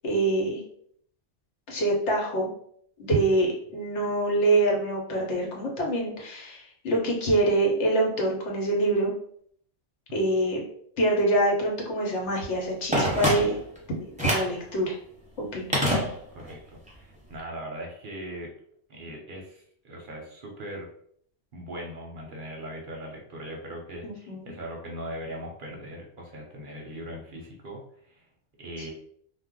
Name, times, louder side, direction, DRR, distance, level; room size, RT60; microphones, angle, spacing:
voice 1, 0.0-0.6 1.7-2.5 3.0-9.1 10.1-10.6 11.0-13.6 13.9-15.0 15.4-15.7 24.0-24.5, right 1 dB, 75° left, -1 dB, 1.1 m, -25 dB
Telephone, 12.9-13.8 14.2-14.6 15.7-16.6 16.9-17.0, equal, 10° right, 0.6 m, -26 dB
voice 2, 15.9-18.5 18.9-20.9 21.5-28.2 28.6-28.9, right 1 dB, 55° right, -1 dB, 0.7 m, -40 dB
2.4 x 2.1 x 3.6 m, 0.64 s
omnidirectional pair, 1.2 m